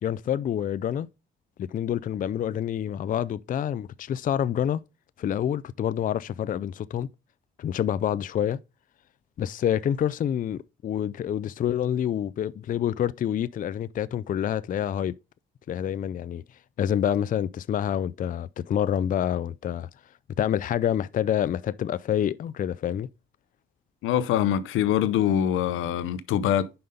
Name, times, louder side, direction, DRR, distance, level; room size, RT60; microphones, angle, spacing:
voice 1, 0.0-1.1 1.6-4.8 5.2-7.1 7.6-8.6 9.4-15.1 15.7-16.4 16.8-19.9 20.4-23.1, left 10 dB, 45° left, 0.4 m, -27 dB
voice 2, 24.0-26.7, left 10 dB, 85° left, 0.7 m, -24 dB
5.7 x 5.5 x 5.1 m
cardioid pair, 90°, 20 cm